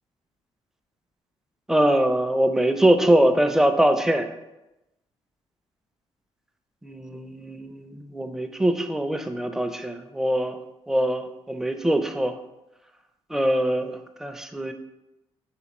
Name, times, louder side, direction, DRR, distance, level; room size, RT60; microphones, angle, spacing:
voice 1, 1.7-4.3 6.8-10.6 10.9-12.3 13.3-14.7, right 1 dB, 5° right, 7 dB, 0.4 m, -23 dB
4.2 x 3.4 x 3.0 m, 0.97 s
supercardioid pair, 75°, 11 cm